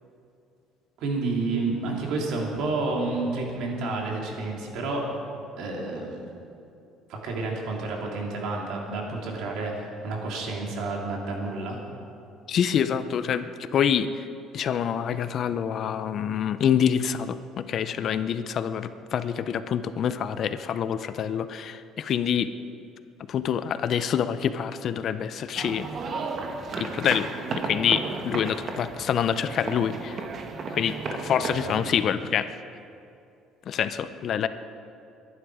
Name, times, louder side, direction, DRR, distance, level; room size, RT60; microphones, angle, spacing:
voice 1, 1.0-5.1 5.6-6.2 7.1-11.8, right 3 dB, 65° right, -1 dB, 3.1 m, -30 dB
voice 2, 12.5-14.3 14.5-22.5 23.3-25.9 26.8-27.3 27.6-30.2 30.7-32.5 33.7-34.5, left 8 dB, 40° left, 12 dB, 0.5 m, -26 dB
sound 1, 25.6-32.0, right 4 dB, 35° right, 1.2 m, -34 dB
22.5 x 11.5 x 4.9 m, 2.6 s
cardioid pair, 170°, 0 cm